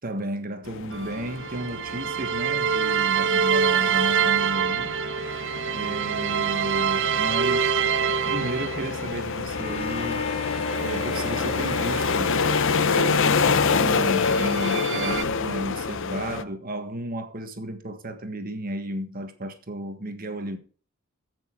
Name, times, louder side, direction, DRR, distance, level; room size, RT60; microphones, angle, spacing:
voice 1, 0.0-5.0 5.7-7.7 8.3-10.3 10.8-12.4 12.9-20.6, right 1 dB, 40° right, 1.6 m, -33 dB
sound 1, 0.7-16.4, left 5 dB, 60° left, 0.8 m, -27 dB
sound 2, 0.9-9.2 9.7-13.6 14.0-15.2, right 7 dB, 55° right, 0.8 m, -27 dB
Bowed string instrument, 9.5-14.5, left 5 dB, 25° left, 0.8 m, -36 dB
15.0 x 6.4 x 4.7 m
head